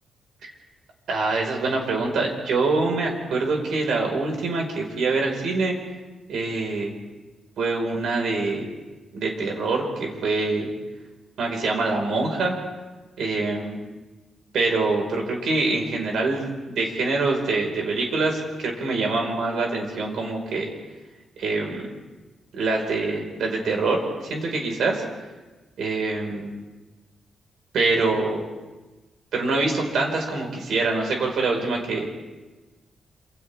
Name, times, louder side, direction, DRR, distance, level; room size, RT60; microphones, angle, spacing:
voice 1, 1.1-5.8 6.3-6.9 7.6-8.7 9.1-10.7 11.4-12.6 13.2-13.8 14.5-20.7 21.4-21.9 22.5-25.0 25.8-26.5 27.7-28.4 29.3-32.1, right 3 dB, 70° right, 1 dB, 5.0 m, -25 dB
28.5 x 27.0 x 3.6 m, 1.2 s
wide cardioid pair, 160°, 0 cm